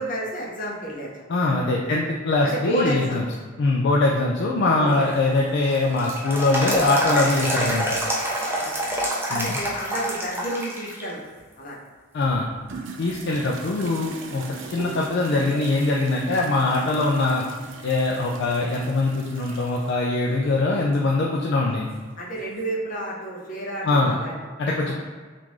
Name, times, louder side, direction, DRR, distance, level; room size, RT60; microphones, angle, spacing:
voice 1, 0.0-1.6 2.4-3.3 4.8-5.1 8.6-8.7 9.3-11.2 11.6-11.8 22.2-24.5 24.8-25.0, right 1 dB, 45° left, -4 dB, 0.8 m, -30 dB
voice 2, 1.3-3.2 3.6-7.9 9.3-9.6 12.1-12.5 13.0-17.4 17.8-21.9 23.8-24.2 24.6-25.0, left 2 dB, 60° left, -2 dB, 0.4 m, -22 dB
sound 1, 4.9-11.0 11.4-11.5 12.3-12.7 13.3-13.4 13.8-15.1 15.4-15.5 18.8-18.9 21.9-22.0, right 1 dB, 10° right, 0.5 m, -27 dB
sound 2, 12.7-19.9, right 4 dB, 70° right, 0.4 m, -40 dB
3.6 x 2.5 x 3.0 m, 1.5 s
head